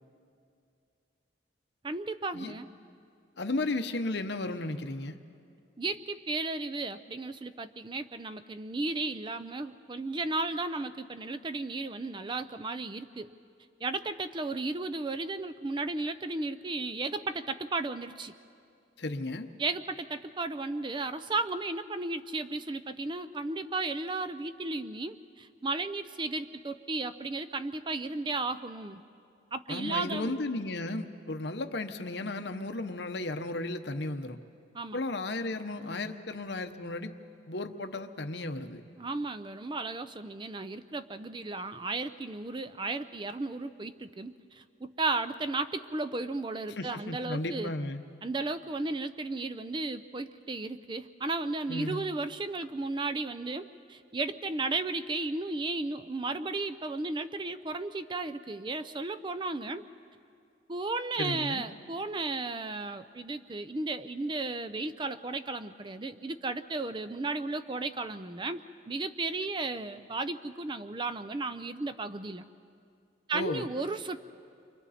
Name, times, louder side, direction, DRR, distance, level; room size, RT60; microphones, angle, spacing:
voice 1, 1.8-2.7 5.8-13.3 13.8-18.3 19.6-29.0 29.5-30.3 34.7-35.0 39.0-47.7 48.2-59.9 60.7-72.4 73.3-74.2, right 3 dB, 25° right, 11 dB, 0.4 m, -34 dB
voice 2, 3.4-5.2 19.0-19.5 29.7-34.4 34.9-37.1 37.5-38.8 46.8-48.0 51.7-52.1 61.2-61.6 73.3-73.7, left 2 dB, 65° left, 7 dB, 0.9 m, -34 dB
29.5 x 24.5 x 4.2 m, 2.4 s
head